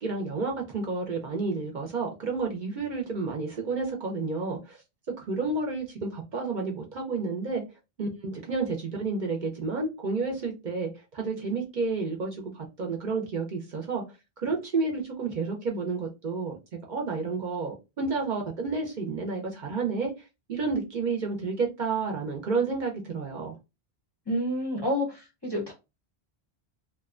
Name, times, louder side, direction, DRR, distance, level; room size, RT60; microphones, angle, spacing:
voice 1, 0.0-4.8 5.2-7.6 8.0-14.0 14.4-16.6 16.9-20.1 20.5-23.5, right 4 dB, 55° right, 0.6 m, -30 dB
voice 2, 24.3-25.7, equal, 30° left, 0.6 m, -29 dB
2.5 x 2.1 x 2.4 m
omnidirectional pair, 1.1 m